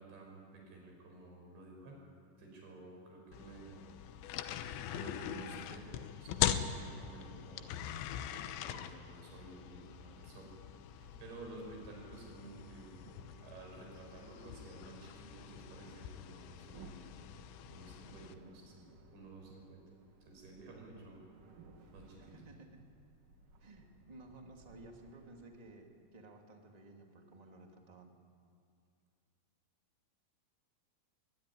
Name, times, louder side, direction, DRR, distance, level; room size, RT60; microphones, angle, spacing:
voice 1, 0.0-2.0 2.4-3.9 4.4-7.8 8.7-10.5 10.9-13.1 13.4-17.3 17.7-19.8 20.2-21.2 21.9-22.3, right 2 dB, 75° right, 0 dB, 8.3 m, -52 dB
sound 1, 3.3-18.3, left 10 dB, 90° left, 3.3 m, -42 dB
sound 2, 11.0-25.4, right 3 dB, 55° right, 3.4 m, -61 dB
voice 2, 22.2-22.8 23.6-28.1, right 2 dB, 20° right, 2 dB, 1.1 m, -55 dB
22.0 x 22.0 x 9.9 m, 2.3 s
omnidirectional pair, 5.1 m